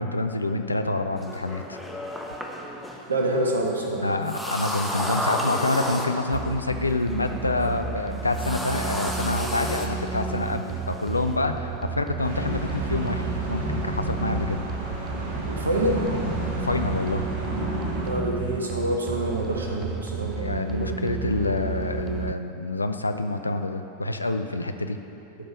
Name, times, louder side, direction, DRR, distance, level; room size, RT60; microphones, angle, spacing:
voice 1, 0.0-1.8 4.0-14.6 16.6-17.3 20.4-25.0, left 2 dB, 80° left, 7 dB, 0.5 m, -27 dB
sound 1, 1.2-11.4, equal, ahead, 1.1 m, -33 dB
voice 2, 3.1-4.0 15.4-16.0 18.0-21.1, right 1 dB, 75° right, 0 dB, 1.4 m, -27 dB
sound 2, 6.3-22.3, right 5 dB, 20° right, 0.3 m, -33 dB
sound 3, 12.2-18.1, right 1 dB, 55° right, 2.5 m, -31 dB
11.5 x 5.4 x 6.6 m, 2.8 s
figure-of-eight pair, 90°, 0 cm